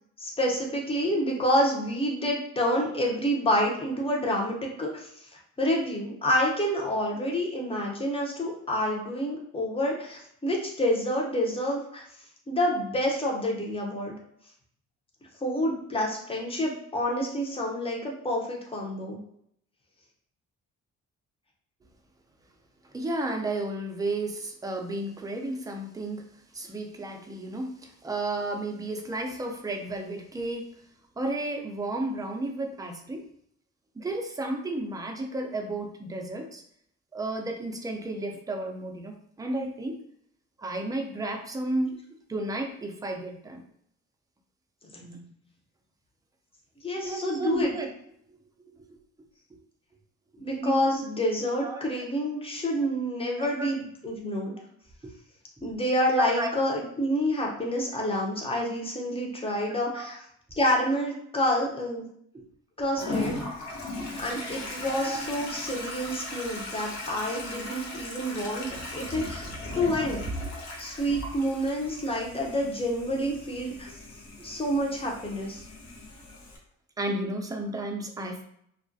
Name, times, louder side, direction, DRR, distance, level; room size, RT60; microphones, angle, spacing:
voice 1, 0.2-12.0 12.5-14.1 15.4-19.2 44.9-45.2 46.8-47.7 50.4-54.5 55.6-60.2 60.6-62.1 62.8-63.4 64.2-70.2 70.8-73.9 74.4-75.6, equal, 20° left, -1 dB, 0.7 m, -28 dB
voice 2, 22.8-30.8 31.2-33.2 34.0-36.6 37.1-40.0 40.6-42.0 42.3-43.6 47.0-47.9 48.7-49.0 49.5-49.6 50.6-50.9 51.6-51.8 53.3-53.7 55.0-55.1 56.2-56.5 59.9-60.1 62.3-62.5 64.0-64.1 65.1-65.2 74.4-74.5 77.0-78.4, right 2 dB, 10° right, 2 dB, 0.4 m, -33 dB
Toilet flush, 63.0-76.6, left 2 dB, 65° left, 0.8 m, -37 dB
2.3 x 2.1 x 2.6 m, 0.69 s
cardioid pair, 90°, 30 cm